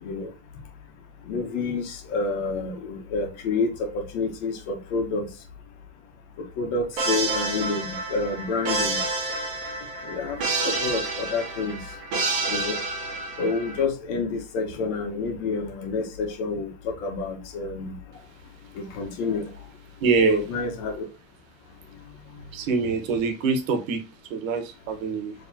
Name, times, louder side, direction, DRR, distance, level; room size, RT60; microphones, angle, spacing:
voice 1, 1.3-5.2 6.6-9.0 10.0-10.4 10.6-11.8 12.5-12.8 13.4-18.0 18.8-19.5 20.2-21.0, left 4 dB, 60° left, 1.3 m, -28 dB
sound 1, 7.0-13.8, right 3 dB, 35° right, 1.7 m, -29 dB
voice 2, 20.0-20.4 22.5-24.0 24.3-25.3, right 4 dB, 85° right, 1.2 m, -24 dB
4.7 x 3.3 x 2.7 m
supercardioid pair, 175°, 39 cm